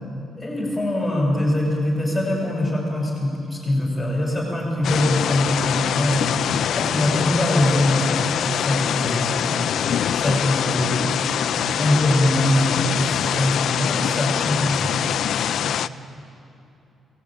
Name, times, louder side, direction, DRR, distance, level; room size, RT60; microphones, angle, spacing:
voice 1, 0.4-9.6 10.2-14.9 15.6-15.8, left 1 dB, ahead, -2 dB, 6.1 m, -23 dB
sound 1, 4.8-15.9, left 9 dB, 55° left, 0.5 m, -24 dB
24.0 x 18.0 x 8.8 m, 2.8 s
cardioid pair, 180°, 0 cm